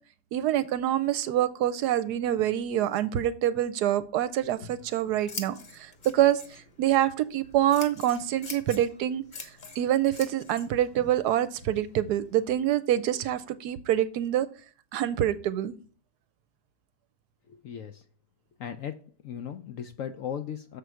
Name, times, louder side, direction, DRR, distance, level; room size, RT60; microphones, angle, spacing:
voice 1, 0.3-9.2 9.8-14.5 14.9-15.7, right 12 dB, 75° right, 1.1 m, -26 dB
Scissors, 4.4-12.5, left 3 dB, 35° left, 0.9 m, -46 dB
voice 2, 17.5-18.0 18.6-20.8, left 8 dB, 70° left, 0.8 m, -37 dB
6.9 x 4.5 x 6.2 m
omnidirectional pair, 1.8 m